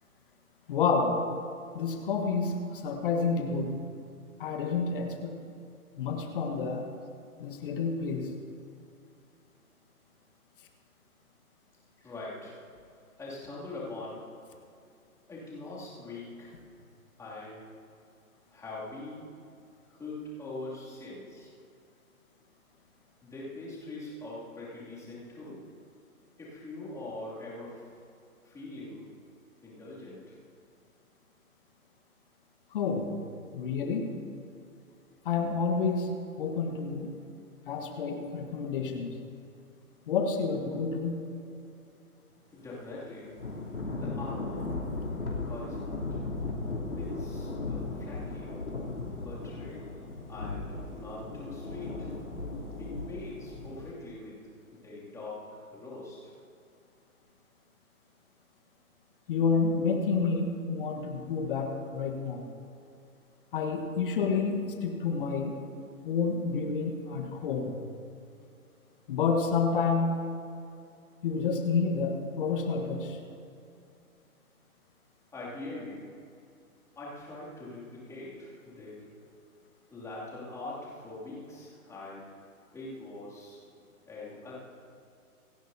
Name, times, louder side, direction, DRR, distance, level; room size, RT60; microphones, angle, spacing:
voice 1, 0.7-1.2 1.7-2.5 2.8-3.7 4.4-5.3 6.0-6.9 7.4-8.3 32.7-33.1 33.5-34.1 35.2-36.1 36.4-37.1 37.7-39.1 40.1-41.2 59.3-62.5 63.5-65.5 66.0-67.7 69.1-70.1 71.2-73.1, left 5 dB, 35° left, 4 dB, 1.5 m, -29 dB
voice 2, 12.0-12.6 13.2-14.2 15.3-16.6 17.2-17.7 18.5-19.4 19.9-21.5 23.2-25.6 26.4-27.9 28.4-29.1 29.6-30.4 42.5-43.4 43.9-44.8 45.4-46.2 47.0-48.6 49.1-50.0 50.3-52.1 52.8-54.4 54.7-56.3 75.3-76.1 77.0-79.1 79.9-82.3 82.7-83.6 84.1-84.6, left 2 dB, 5° left, -7 dB, 2.8 m, -43 dB
Thunder / Rain, 43.4-53.9, left 3 dB, 80° left, 3.5 m, -36 dB
27.0 x 11.0 x 2.8 m, 2.5 s
figure-of-eight pair, 135°, 44 cm